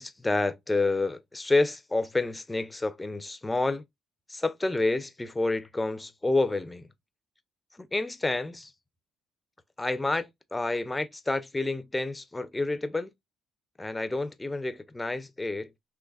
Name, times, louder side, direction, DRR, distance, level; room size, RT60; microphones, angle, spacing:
voice 1, 0.0-3.8 4.3-6.9 7.8-8.7 9.8-13.1 13.8-15.7, left 2 dB, 15° left, 0.6 m, -29 dB
3.9 x 2.9 x 2.3 m
supercardioid pair, 65°, 0 cm